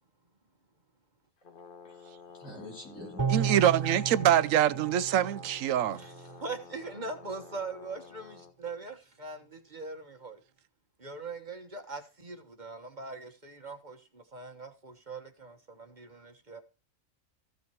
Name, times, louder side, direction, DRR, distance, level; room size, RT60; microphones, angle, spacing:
Brass instrument, 1.4-8.5, left 5 dB, 45° left, 1.3 m, -52 dB
voice 1, 1.8-3.9, left 1 dB, 85° left, 4.4 m, -46 dB
sound 1, 3.2-6.5 6.9-7.0, right 7 dB, 15° right, 0.8 m, -34 dB
voice 2, 3.3-6.0, right 11 dB, 80° right, 1.1 m, -24 dB
voice 3, 5.9-10.4 11.0-16.6, right 3 dB, 35° right, 1.4 m, -41 dB
15.0 x 6.0 x 4.6 m
omnidirectional pair, 1.3 m